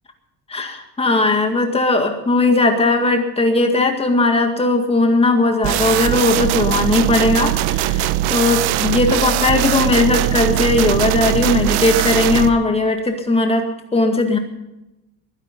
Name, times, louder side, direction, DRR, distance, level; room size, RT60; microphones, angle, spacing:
voice 1, 0.5-13.6 13.9-14.4, left 2 dB, 15° left, 5 dB, 2.0 m, -18 dB
sound 1, 5.6-12.5, right 13 dB, 80° right, 1.0 m, -20 dB
22.0 x 10.5 x 5.4 m, 0.94 s
cardioid pair, 175°, 38 cm